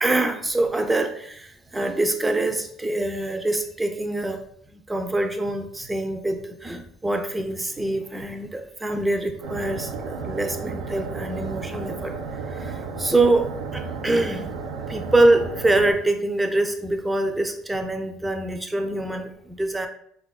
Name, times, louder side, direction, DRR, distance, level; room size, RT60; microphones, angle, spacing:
voice 1, 0.0-4.4 4.7-12.1 12.5-14.5 14.9-19.9, right 2 dB, 15° right, 6 dB, 0.4 m, -24 dB
sound 1, 9.4-15.9, right 4 dB, 85° right, 0.3 m, -33 dB
3.4 x 2.2 x 2.2 m, 0.68 s
supercardioid pair, 100°, 0 cm